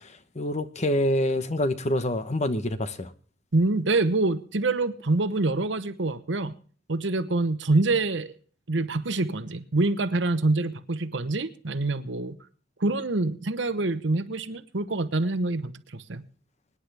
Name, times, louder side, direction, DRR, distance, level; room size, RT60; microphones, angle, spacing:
voice 1, 0.4-3.1, left 1 dB, 35° left, 11 dB, 1.0 m, -26 dB
voice 2, 3.5-6.5 6.9-8.3 8.7-12.4 12.8-16.2, right 2 dB, 65° right, 12 dB, 1.0 m, -26 dB
24.5 x 9.9 x 3.4 m, 0.43 s
head